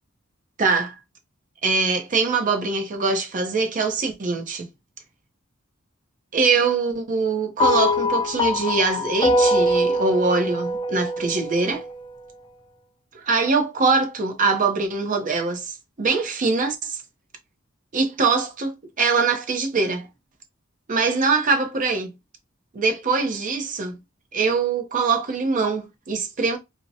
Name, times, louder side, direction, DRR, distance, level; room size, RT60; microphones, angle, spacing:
voice 1, 0.6-0.9 1.6-4.7 6.3-11.8 13.2-17.0 17.9-20.1 20.9-22.1 22.7-24.0 24.3-26.6, right 4 dB, 40° right, 0.6 m, -23 dB
sound 1, 7.6-12.0, left 1 dB, 25° left, 0.3 m, -23 dB
2.6 x 2.1 x 2.6 m
head